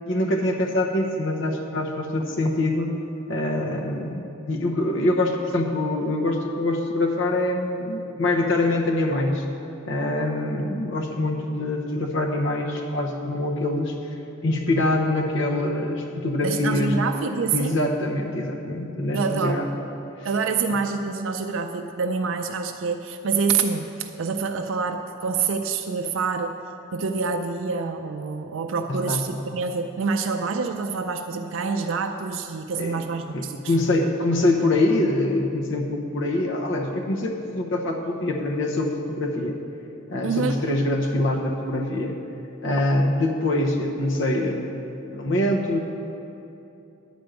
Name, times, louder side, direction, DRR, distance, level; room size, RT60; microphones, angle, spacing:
voice 1, 0.1-3.0 3.3-9.4 9.8-14.0 14.4-17.0 17.5-19.7 20.7-20.8 28.9-29.2 32.8-33.0 33.3-39.6 40.1-42.1 42.6-44.8 45.1-45.8, left 1 dB, 65° left, 1 dB, 0.8 m, -24 dB
voice 2, 16.4-17.8 19.1-19.6 20.2-26.6 26.9-33.7 40.2-40.6, right 5 dB, 70° right, 5 dB, 0.4 m, -26 dB
10.0 x 5.2 x 7.8 m, 2.8 s
head